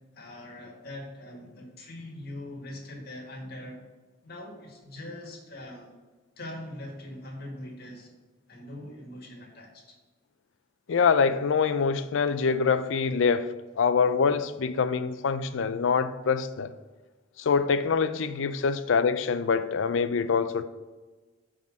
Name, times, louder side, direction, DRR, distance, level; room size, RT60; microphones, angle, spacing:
voice 1, 0.1-3.8 4.2-5.9 6.4-8.1 8.5-9.8, left 1 dB, 55° left, 1.7 m, -42 dB
voice 2, 10.9-13.5 13.8-16.7 17.4-20.6, left 5 dB, 75° left, 0.4 m, -25 dB
6.0 x 3.7 x 6.1 m
head